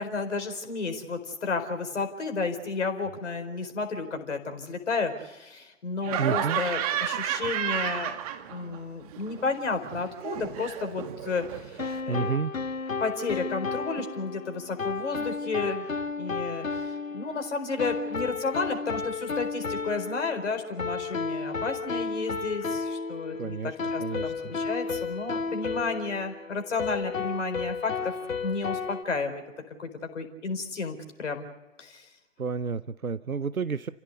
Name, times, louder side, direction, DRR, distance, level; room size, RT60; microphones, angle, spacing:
voice 1, 0.0-8.2 8.5-12.4 13.0-15.9 16.2-28.1 28.4-29.4 29.8-29.9 30.1-31.5 31.8-32.1, left 4 dB, 60° left, 5 dB, 4.5 m, -32 dB
Laughter, 6.0-8.8 9.1-12.0, right 11 dB, 25° right, 1.9 m, -32 dB
voice 2, 6.2-6.6 12.1-12.5 23.3-24.3 32.4-33.9, right 6 dB, 85° right, 15 dB, 0.8 m, -30 dB
sound 1, 11.8-29.0, left 4 dB, 75° left, 1.2 m, -33 dB
29.5 x 16.0 x 8.4 m, 1.1 s
figure-of-eight pair, 130°, 41 cm